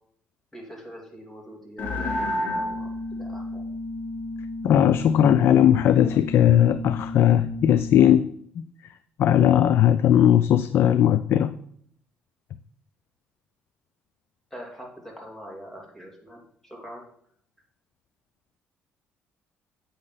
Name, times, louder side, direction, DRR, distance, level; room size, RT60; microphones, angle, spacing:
voice 1, 0.5-3.6 14.5-17.0, equal, 10° left, -1 dB, 2.8 m, -43 dB
sound 1, 1.8-8.1, left 1 dB, 40° left, 3.4 m, -32 dB
voice 2, 4.6-8.3 8.6-8.7 9.2-11.6, left 10 dB, 65° left, 12 dB, 0.4 m, -18 dB
8.4 x 6.5 x 4.1 m, 0.65 s
cardioid pair, 95°, 4 cm